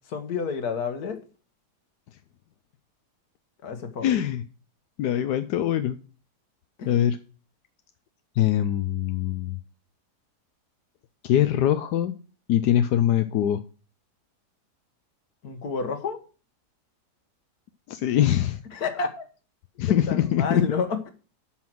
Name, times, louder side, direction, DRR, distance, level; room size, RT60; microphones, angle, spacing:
voice 1, 0.1-1.2 3.6-4.1 6.8-6.9 15.4-16.2 18.7-19.3 19.9-21.1, left 5 dB, 65° left, 8 dB, 1.9 m, -29 dB
voice 2, 4.0-4.4 5.0-6.0 6.8-7.2 8.4-9.6 11.2-12.1 12.5-13.6 17.9-18.6 19.8-20.6, left 11 dB, 85° left, 9 dB, 1.3 m, -23 dB
12.0 x 5.7 x 6.1 m, 0.37 s
omnidirectional pair, 1.7 m